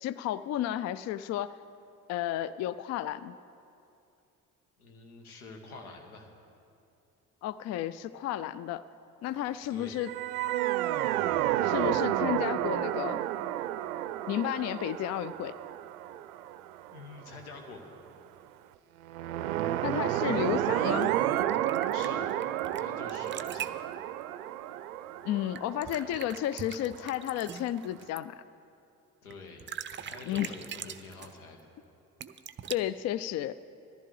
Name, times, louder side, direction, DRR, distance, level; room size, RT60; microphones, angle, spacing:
voice 1, 0.0-1.5 2.1-3.3 7.4-8.8 9.2-10.1 11.6-13.2 14.3-15.5 19.8-21.2 25.2-28.4 30.3-30.5 32.7-33.6, left 12 dB, 40° left, 16 dB, 0.4 m, -32 dB
voice 2, 4.8-6.3 9.7-10.0 16.9-17.9 21.9-22.2 22.8-23.8 25.8-26.1 29.2-29.7 30.0-31.6, left 4 dB, 80° left, 3 dB, 1.4 m, -47 dB
sound 1, 10.0-17.2 19.1-26.9, right 13 dB, 75° right, 0.5 m, -31 dB
sound 2, 21.0-22.8 23.1-23.8 25.5-28.2 29.3-29.4 29.6-31.4 32.2-32.8, right 9 dB, 25° right, 0.6 m, -42 dB
19.5 x 14.0 x 3.3 m, 2.6 s
figure-of-eight pair, 45°, 44 cm